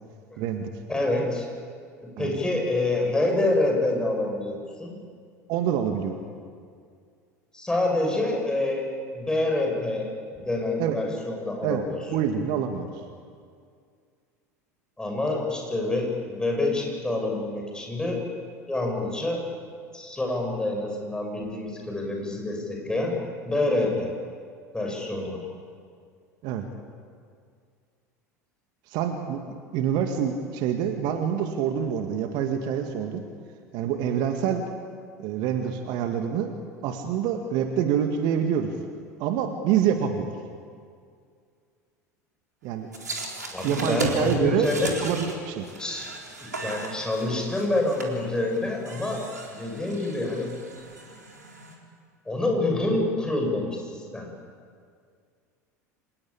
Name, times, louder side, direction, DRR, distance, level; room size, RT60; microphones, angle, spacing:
voice 1, 0.4-0.7 2.2-2.5 5.5-6.2 10.8-11.0 11.6-13.0 26.4-26.6 28.9-33.2 33.7-34.6 35.2-36.5 36.8-38.7 39.2-40.3 42.6-42.9 43.6-44.7 45.0-45.7, right 8 dB, 50° right, 5 dB, 2.0 m, -26 dB
voice 2, 0.9-1.5 2.0-5.0 7.5-10.1 10.4-12.0 15.0-18.3 18.7-19.4 19.9-23.2 23.5-24.1 24.7-25.4 43.5-44.9 45.8-46.1 46.4-49.2 49.5-50.6 52.3-54.3, left 2 dB, 10° left, 1 dB, 7.5 m, -27 dB
sound 1, 42.9-51.7, right 2 dB, 80° right, 3.8 m, -37 dB
26.5 x 19.5 x 8.7 m, 2.1 s
figure-of-eight pair, 75°, 9 cm